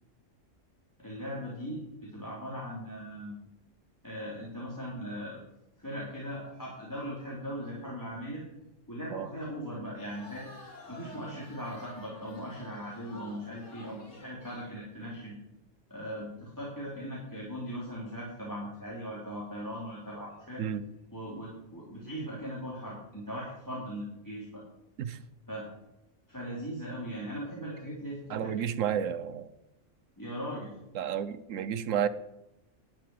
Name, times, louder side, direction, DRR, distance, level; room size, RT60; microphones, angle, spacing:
voice 1, 1.0-3.4 4.0-5.4 5.8-8.4 8.9-10.5 10.9-15.4 15.9-20.6 21.1-24.6 25.5-25.7 26.3-28.5 30.2-30.7, equal, 15° left, -5 dB, 3.1 m, -39 dB
sound 1, 9.9-14.8, left 1 dB, 70° left, 2.8 m, -50 dB
voice 2, 28.3-29.5 30.9-32.1, right 9 dB, 85° right, 15 dB, 1.2 m, -31 dB
12.0 x 7.2 x 9.5 m, 0.90 s
omnidirectional pair, 1.3 m